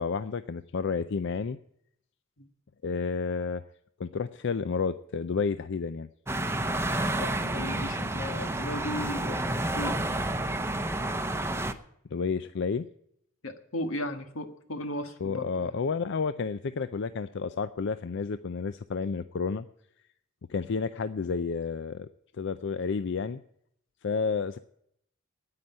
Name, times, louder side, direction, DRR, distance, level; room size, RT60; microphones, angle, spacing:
voice 1, 0.0-1.6 2.8-3.6 4.0-6.1 12.1-12.9 15.2-19.6 20.5-22.1 22.4-23.4 24.0-24.6, left 5 dB, 60° left, 12 dB, 0.5 m, -30 dB
sound 1, 6.3-11.7, right 1 dB, 10° right, 0.7 m, -30 dB
voice 2, 7.2-10.0 13.4-15.7, left 1 dB, 85° left, 7 dB, 1.7 m, -36 dB
9.8 x 9.4 x 8.7 m, 0.72 s
head